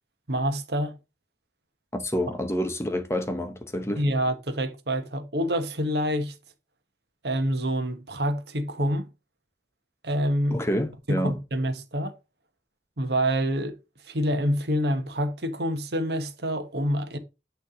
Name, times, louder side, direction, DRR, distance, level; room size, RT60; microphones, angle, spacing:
voice 1, 0.3-1.0 4.0-6.3 7.2-9.1 10.0-10.6 11.1-12.1 13.0-13.8 14.1-17.2, equal, 65° right, 1.3 m, -27 dB
voice 2, 1.9-4.0 10.5-11.4, equal, 15° left, 0.8 m, -28 dB
9.4 x 3.4 x 5.0 m
head